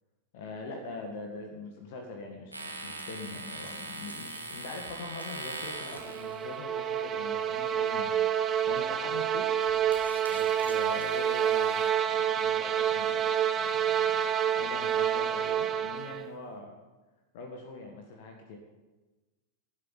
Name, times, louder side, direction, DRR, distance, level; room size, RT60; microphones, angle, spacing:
voice 1, 0.3-9.6 10.3-16.7 17.3-18.6, left 3 dB, 50° left, 3 dB, 1.7 m, -43 dB
sound 1, 2.5-6.5 8.5-8.9 9.3-11.9, right 2 dB, 85° right, 1.8 m, -42 dB
sound 2, 5.8-16.3, right 9 dB, 25° right, 0.8 m, -28 dB
12.0 x 7.7 x 8.8 m, 1.2 s
figure-of-eight pair, 90°, 0 cm